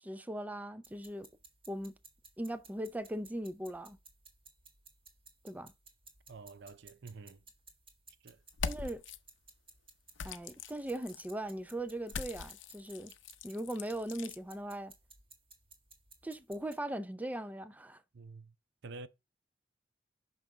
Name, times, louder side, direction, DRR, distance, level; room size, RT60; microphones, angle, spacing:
voice 1, 0.0-1.3 1.7-1.9 2.4-4.0 5.4-5.7 8.6-9.0 10.2-13.1 13.4-14.9 16.2-18.0, right 1 dB, 10° right, 0.5 m, -39 dB
sound 1, 0.8-16.8, right 4 dB, 30° right, 1.7 m, -59 dB
voice 2, 6.3-7.4 8.2-8.4 18.1-18.5 18.8-19.1, right 3 dB, 65° right, 0.6 m, -48 dB
sound 2, 8.5-9.2 10.2-11.3 12.1-14.4, left 5 dB, 70° left, 0.7 m, -42 dB
6.1 x 5.5 x 3.8 m
head